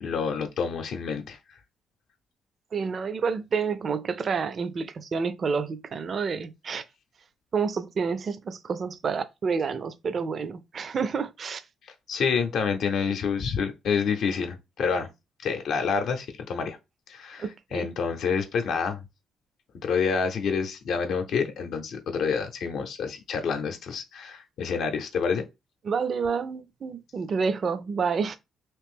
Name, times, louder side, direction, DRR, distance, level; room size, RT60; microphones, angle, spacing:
voice 1, 0.0-1.4 12.1-15.1 15.4-16.8 17.1-19.0 19.8-25.4, left 6 dB, 70° left, 0.6 m, -28 dB
voice 2, 2.7-6.8 7.5-11.6 17.4-17.9 25.8-28.4, right 5 dB, 50° right, 0.4 m, -29 dB
3.0 x 2.6 x 3.5 m
cardioid pair, 90°, 0 cm